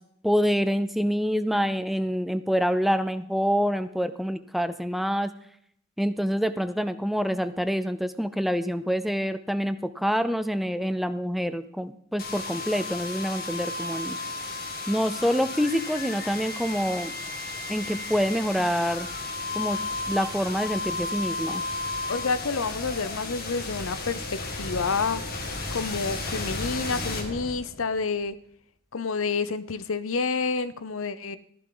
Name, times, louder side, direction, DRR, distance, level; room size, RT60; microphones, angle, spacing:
voice 1, 0.2-5.3 6.0-14.2 14.9-17.1 17.7-19.1 19.5-19.8 20.1-21.6, equal, ahead, 12 dB, 0.5 m, -26 dB
sound 1, 12.2-28.0, left 2 dB, 50° left, 2.2 m, -33 dB
voice 2, 22.1-25.2 25.7-28.4 28.9-31.4, left 4 dB, 85° left, 15 dB, 0.8 m, -29 dB
14.5 x 11.0 x 3.9 m, 0.67 s
head